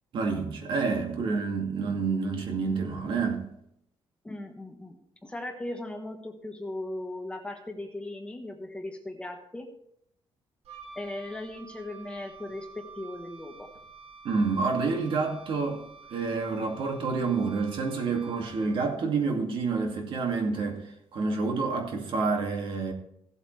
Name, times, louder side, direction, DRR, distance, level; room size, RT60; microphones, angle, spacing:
voice 1, 0.1-3.5 14.2-15.8 16.1-20.8 21.1-22.9, right 4 dB, 55° right, 2.3 m, -28 dB
voice 2, 4.2-9.7 10.9-13.7, left 1 dB, 10° left, 1.1 m, -38 dB
Wind instrument woodwind instrument, 10.6-19.0, right 4 dB, 75° right, 1.6 m, -49 dB
16.0 x 7.9 x 3.3 m
cardioid pair, 165°, 10 cm